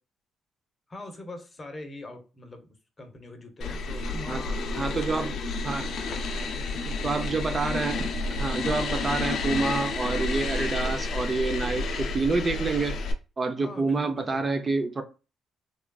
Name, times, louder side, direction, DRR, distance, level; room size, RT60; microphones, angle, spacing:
voice 1, 0.9-5.4 6.1-6.3 6.5-7.9 8.6-8.9 13.6-14.4, left 1 dB, 30° left, 0.7 m, -43 dB
sound 1, 3.6-13.1, left 3 dB, 70° left, 0.5 m, -30 dB
voice 2, 4.7-5.3 5.6-5.9 7.0-8.0 8.3-13.0 13.4-15.0, right 3 dB, 30° right, 0.4 m, -28 dB
3.0 x 2.3 x 2.3 m
cardioid pair, 90°, 0 cm